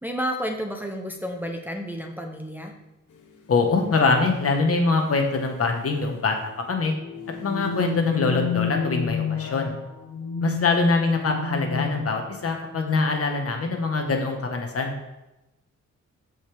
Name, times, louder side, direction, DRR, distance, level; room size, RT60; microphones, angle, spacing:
voice 1, 0.0-2.7, equal, 5° right, 2 dB, 0.7 m, -31 dB
sound 1, 3.2-3.3 4.3-4.6 4.9-5.0 5.4-5.7 6.7-12.4, left 7 dB, 90° left, 1.1 m, -30 dB
voice 2, 3.5-6.9 7.4-9.7 10.4-14.9, left 3 dB, 50° left, 3 dB, 1.2 m, -23 dB
14.0 x 5.3 x 3.4 m, 0.95 s
wide cardioid pair, 170°, 30 cm